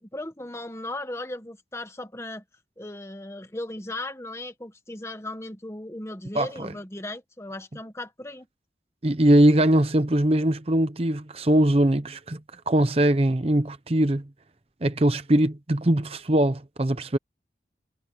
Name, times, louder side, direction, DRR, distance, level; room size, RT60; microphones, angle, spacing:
voice 1, 0.0-2.4 2.8-8.5, left 1 dB, 15° left, 1.4 m, -37 dB
voice 2, 6.3-6.7 9.0-12.4 12.7-14.3 14.8-17.2, right 1 dB, 35° right, 0.8 m, -21 dB
head